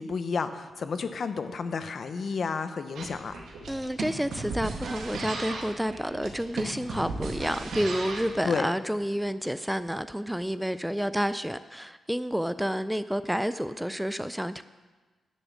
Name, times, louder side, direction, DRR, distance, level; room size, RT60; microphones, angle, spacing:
voice 1, 0.0-3.4 8.4-8.7, left 5 dB, 55° left, 10 dB, 0.8 m, -31 dB
sound 1, 2.9-8.3, right 3 dB, 80° right, 1.7 m, -36 dB
voice 2, 3.7-14.6, equal, 5° right, 13 dB, 0.3 m, -30 dB
10.5 x 6.9 x 7.4 m, 1.3 s
cardioid pair, 90°, 0 cm